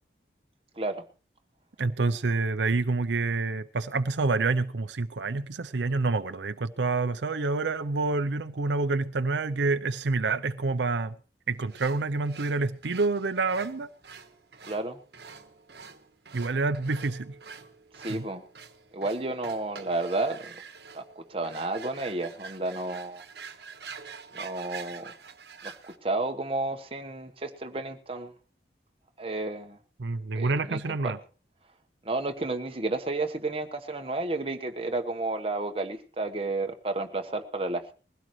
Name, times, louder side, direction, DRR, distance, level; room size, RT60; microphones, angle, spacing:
voice 1, 1.8-11.2 11.5-13.9 16.3-17.4 18.1-18.2 30.0-31.2, right 3 dB, 80° right, 0.6 m, -27 dB
sound 1, 11.7-26.0, right 5 dB, 65° right, 1.4 m, -46 dB
voice 2, 14.7-15.0 17.9-18.4 18.9-20.6 20.9-23.2 24.3-25.1 25.6-28.3 29.2-29.8 30.3-31.1 32.0-37.9, right 2 dB, 30° right, 1.2 m, -32 dB
21.0 x 16.5 x 3.2 m
head